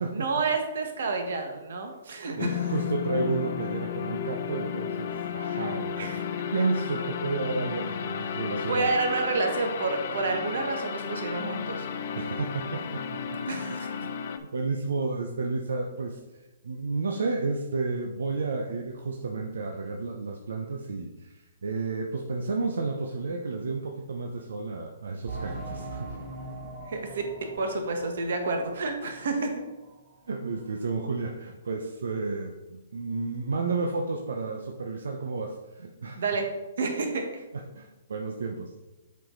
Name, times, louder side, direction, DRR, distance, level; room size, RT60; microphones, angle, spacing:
voice 1, 0.1-2.7 6.0-6.2 8.7-11.9 13.5-13.9 26.9-27.3 27.6-29.6 36.2-36.5 36.8-37.4, right 3 dB, 70° right, 4 dB, 1.4 m, -29 dB
voice 2, 2.3-6.2 6.5-8.9 12.1-14.1 14.5-16.2 16.6-26.2 30.3-36.2 37.5-38.7, right 3 dB, 90° right, 2 dB, 0.8 m, -32 dB
sound 1, 2.4-14.4, left 7 dB, 50° left, 0.6 m, -33 dB
sound 2, 25.3-29.6 29.9-30.0 30.5-30.6, right 2 dB, 25° right, 1.0 m, -41 dB
7.5 x 4.7 x 3.9 m, 1.1 s
hypercardioid pair, 160°, 0 cm